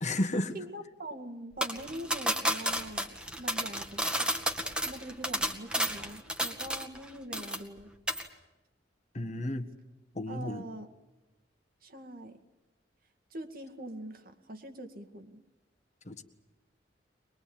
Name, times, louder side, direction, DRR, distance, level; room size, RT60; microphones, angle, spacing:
voice 1, 0.0-0.5 9.1-9.7 10.1-10.6 16.0-16.2, left 1 dB, 40° left, 6 dB, 1.6 m, -32 dB
voice 2, 0.5-4.3 4.8-7.9 10.3-10.9 11.8-12.4 13.3-15.4, right 1 dB, 55° right, 7 dB, 2.2 m, -43 dB
sound 1, 1.6-7.0 7.3-7.8 8.1-8.3, equal, 5° right, 1.9 m, -31 dB
23.5 x 22.0 x 8.7 m, 1.1 s
head